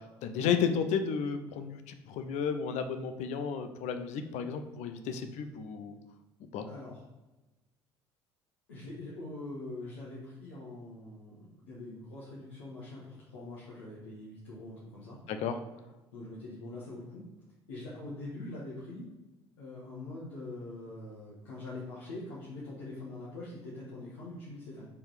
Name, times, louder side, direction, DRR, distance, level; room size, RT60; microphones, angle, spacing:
voice 1, 0.0-6.0 6.5-6.7 15.3-15.6, left 6 dB, 50° left, 8 dB, 0.8 m, -33 dB
voice 2, 6.7-7.0 8.7-15.2 16.1-17.3 17.7-19.1 19.6-24.9, left 2 dB, 70° left, -8 dB, 1.7 m, -43 dB
5.3 x 4.5 x 5.0 m, 1.1 s
figure-of-eight pair, 60°, 14 cm